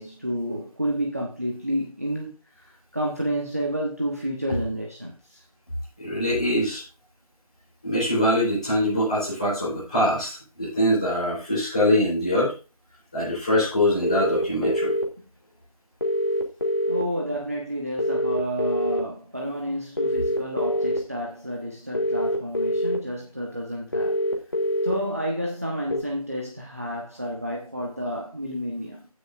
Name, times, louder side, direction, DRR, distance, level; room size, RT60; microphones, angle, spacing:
voice 1, 0.0-5.4 16.9-24.2 24.8-29.1, equal, 25° right, 1.1 m, -30 dB
voice 2, 6.0-6.8 7.8-12.5 13.1-14.9, left 1 dB, 10° left, 3.5 m, -23 dB
sound 1, 14.0-15.0 16.0-17.0 18.0-19.0 20.0-21.0 22.0-23.0 23.9-24.9 25.9-26.0, equal, 35° left, 1.5 m, -24 dB
16.0 x 6.4 x 2.5 m
figure-of-eight pair, 175°, 19 cm